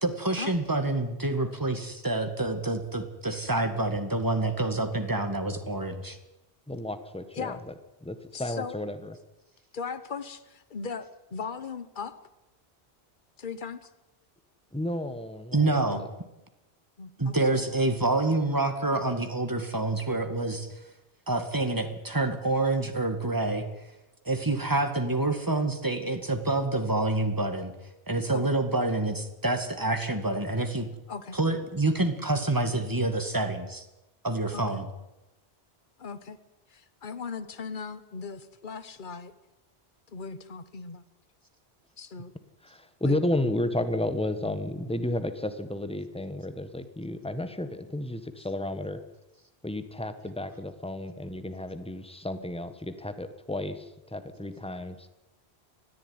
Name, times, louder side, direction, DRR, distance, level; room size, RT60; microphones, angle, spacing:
voice 1, 0.0-6.2 15.5-16.0 17.2-20.7 21.3-23.6 24.3-27.7 28.1-30.9 31.3-33.9 34.2-34.9, right 2 dB, 20° right, 7 dB, 2.2 m, -27 dB
voice 2, 6.7-7.7 8.0-9.1 14.7-16.1 42.6-49.0 49.6-54.9, left 1 dB, 5° left, 10 dB, 1.5 m, -32 dB
voice 3, 8.3-8.8 9.7-12.1 13.4-13.9 15.9-16.0 17.0-17.7 28.3-28.4 31.1-31.4 34.5-34.9 36.0-36.4 36.7-39.3 40.1-41.0 42.0-42.3 43.0-43.2, left 5 dB, 50° left, 13 dB, 1.4 m, -38 dB
20.0 x 14.5 x 9.7 m, 0.96 s
omnidirectional pair, 1.1 m